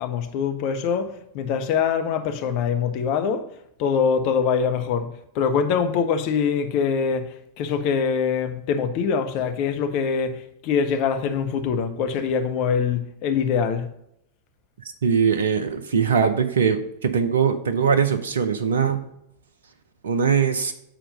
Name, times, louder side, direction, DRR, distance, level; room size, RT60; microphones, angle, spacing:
voice 1, 0.0-3.5 3.8-13.9, left 6 dB, 45° left, 0.9 m, -24 dB
voice 2, 15.0-19.0 20.0-20.7, right 6 dB, 70° right, 0.6 m, -21 dB
7.6 x 4.3 x 5.2 m
figure-of-eight pair, 95°, 0 cm